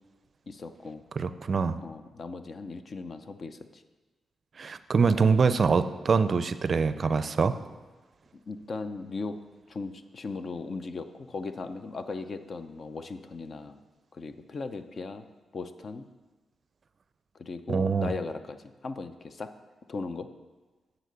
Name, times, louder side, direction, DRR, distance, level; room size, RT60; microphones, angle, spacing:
voice 1, 0.5-1.0 1.8-3.8 8.5-9.4 9.7-13.8 14.1-15.2 15.5-16.0 17.3-19.5 19.9-20.3, left 3 dB, 55° left, 10 dB, 0.6 m, -38 dB
voice 2, 1.2-1.8 4.6-7.6 17.7-18.1, right 5 dB, 50° right, 13 dB, 0.4 m, -24 dB
9.1 x 4.2 x 6.8 m, 1.2 s
cardioid pair, 60°, 0 cm